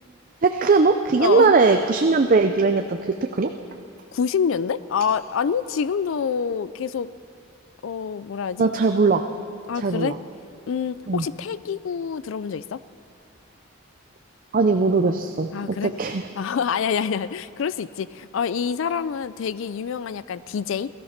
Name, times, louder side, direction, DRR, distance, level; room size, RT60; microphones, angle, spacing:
voice 1, 0.4-3.5 8.6-9.3 9.7-10.2 11.1-11.3 14.5-16.3, right 4 dB, 40° right, 6 dB, 0.5 m, -20 dB
voice 2, 1.2-1.5 4.1-7.1 7.8-8.7 9.7-10.1 10.7-12.8 15.5-15.9 16.4-20.9, left 6 dB, 70° left, 17 dB, 0.4 m, -26 dB
17.5 x 13.5 x 5.8 m, 2.5 s
head